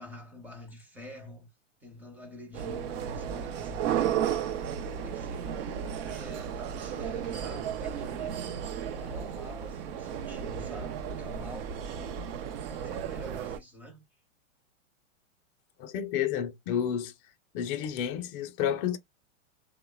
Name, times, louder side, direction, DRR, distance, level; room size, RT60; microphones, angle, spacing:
voice 1, 0.0-1.5 1.8-8.6 8.9-14.0, equal, 5° right, 0.6 m, -47 dB
sound 1, 2.5-13.6, right 9 dB, 50° right, 0.5 m, -34 dB
voice 2, 15.8-17.1 17.5-19.0, left 9 dB, 45° left, 0.5 m, -30 dB
2.9 x 2.1 x 2.2 m
hypercardioid pair, 130°, 40 cm